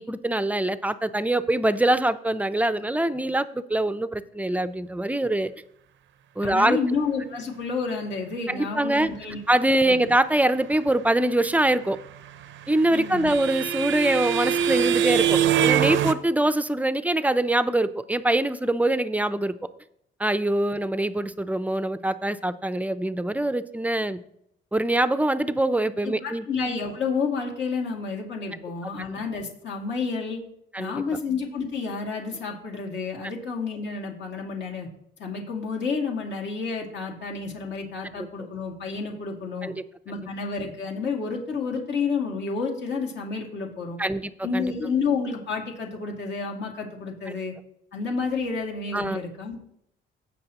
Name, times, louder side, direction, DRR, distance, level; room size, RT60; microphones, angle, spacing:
voice 1, 0.0-5.5 6.4-6.8 8.5-9.1 9.5-12.0 12.7-19.5 20.2-24.2 24.7-26.4 30.7-31.0 39.6-39.8 44.0-44.7 48.9-49.2, right 1 dB, 5° right, 13 dB, 0.5 m, -24 dB
voice 2, 6.4-9.4 9.9-10.0 12.9-13.3 26.0-30.4 30.8-34.9 35.2-39.7 40.1-44.0 44.4-47.5 47.9-49.6, left 5 dB, 65° left, 0 dB, 2.3 m, -30 dB
sound 1, 12.3-16.1, right 9 dB, 70° right, 0.6 m, -23 dB
17.0 x 6.0 x 2.9 m, 0.75 s
cardioid pair, 90°, 20 cm